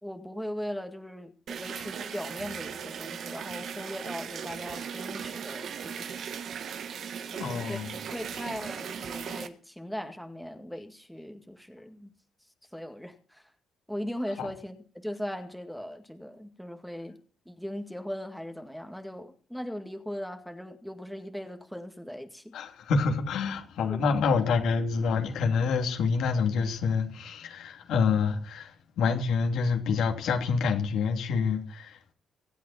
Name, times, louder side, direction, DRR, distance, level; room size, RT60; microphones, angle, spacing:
voice 1, 0.0-6.3 7.3-7.8 8.1-12.1 12.7-13.4 13.9-17.2 17.5-22.5 23.9-24.0, equal, ahead, 2.0 m, -39 dB
sound 1, 1.5-9.5, right 7 dB, 65° right, 1.5 m, -38 dB
voice 2, 7.4-8.0 8.3-8.4 9.1-9.2 14.4-14.5 22.5-32.0, left 5 dB, 80° left, 2.7 m, -27 dB
23.5 x 8.3 x 4.3 m
cardioid pair, 90°, 0 cm